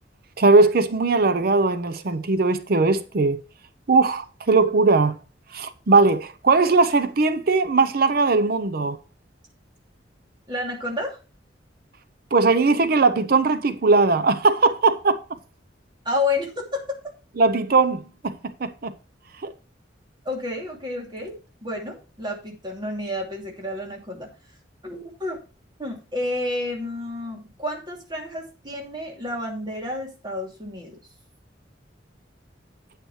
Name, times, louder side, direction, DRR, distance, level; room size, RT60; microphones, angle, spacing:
voice 1, 0.4-3.4 3.9-5.2 5.5-9.0 12.3-15.2 17.4-18.3 18.6-18.9 19.4-19.5, right 3 dB, 55° right, 0.6 m, -19 dB
voice 2, 10.5-11.2 16.0-17.0 20.2-24.3 24.8-25.4 25.8-31.0, left 2 dB, 25° right, 2.7 m, -30 dB
9.2 x 9.2 x 3.2 m
head